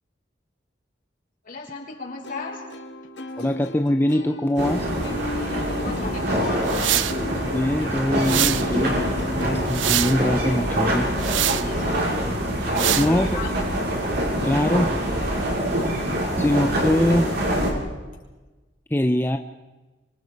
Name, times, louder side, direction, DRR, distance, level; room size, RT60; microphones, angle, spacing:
voice 1, 1.4-2.6 3.3-3.5 5.3-7.0 11.4-12.1 13.0-13.6, left 4 dB, 50° left, -1 dB, 6.3 m, -36 dB
Plucked string instrument, 2.2-9.6, left 1 dB, 65° left, 2.0 m, -35 dB
voice 2, 3.4-4.9 7.4-9.0 9.4-11.1 13.0-13.3 14.4-14.9 16.4-17.3 18.9-19.4, left 1 dB, 10° left, 6 dB, 0.7 m, -22 dB
sound 1, 4.6-17.7, equal, 60° right, 6.6 m, -25 dB
sound 2, 6.7-7.2 8.2-8.7 9.4-10.2 11.2-11.6 12.8-13.1, right 13 dB, 90° right, 0.8 m, -24 dB
26.0 x 25.5 x 5.4 m, 1.2 s
head